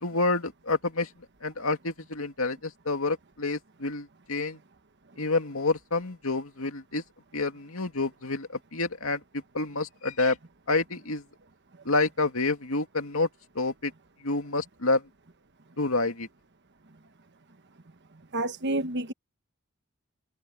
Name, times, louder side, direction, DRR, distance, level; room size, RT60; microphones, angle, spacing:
voice 1, 0.0-1.1 1.4-4.6 5.2-7.0 7.3-9.2 9.5-10.4 10.7-11.2 11.9-13.3 13.6-13.9 14.2-15.0 15.8-16.3, left 3 dB, 75° left, 2.3 m, -28 dB
voice 2, 18.3-19.1, right 1 dB, 55° right, 1.2 m, -29 dB
open air
head